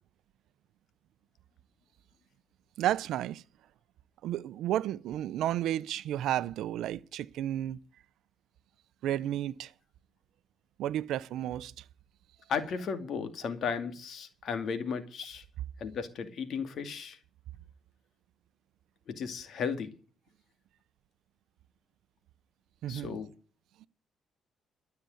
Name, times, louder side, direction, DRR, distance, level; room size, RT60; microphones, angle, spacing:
voice 1, 2.8-3.4 4.2-7.8 9.0-9.7 10.8-11.7 22.8-23.2 23.8-23.9, right 12 dB, 85° right, 0.6 m, -32 dB
voice 2, 12.5-15.4 15.8-17.2 19.1-19.9 22.9-23.3, left 6 dB, 65° left, 2.3 m, -35 dB
13.0 x 6.9 x 9.2 m
cardioid pair, 90°, 0 cm